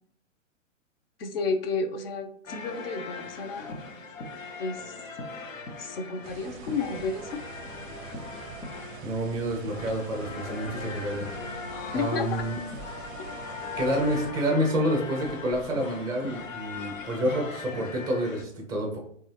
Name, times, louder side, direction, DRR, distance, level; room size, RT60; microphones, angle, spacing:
voice 1, 1.2-3.7 4.6-5.0 5.8-7.4 11.9-12.4, left 4 dB, 50° left, 6 dB, 0.6 m, -31 dB
sound 1, 2.5-18.4, left 4 dB, 80° left, 0.7 m, -39 dB
sound 2, 6.2-14.3, right 5 dB, 60° right, 0.5 m, -45 dB
voice 2, 9.0-11.3 11.9-12.6 13.8-19.0, equal, 10° right, 1 dB, 0.5 m, -28 dB
3.0 x 2.4 x 2.8 m, 0.65 s
figure-of-eight pair, 120°, 39 cm